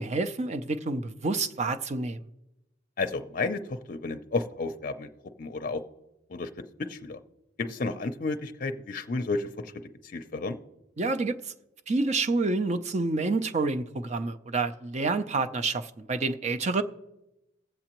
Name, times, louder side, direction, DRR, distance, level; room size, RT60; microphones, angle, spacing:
voice 1, 0.0-2.2 11.0-11.5 11.9-16.8, right 3 dB, 35° right, 0.5 m, -28 dB
voice 2, 3.0-5.1 5.4-5.8 6.3-6.5 6.8-7.2 7.6-9.7 10.0-10.6, left 3 dB, 45° left, 0.5 m, -32 dB
19.0 x 7.5 x 3.0 m
head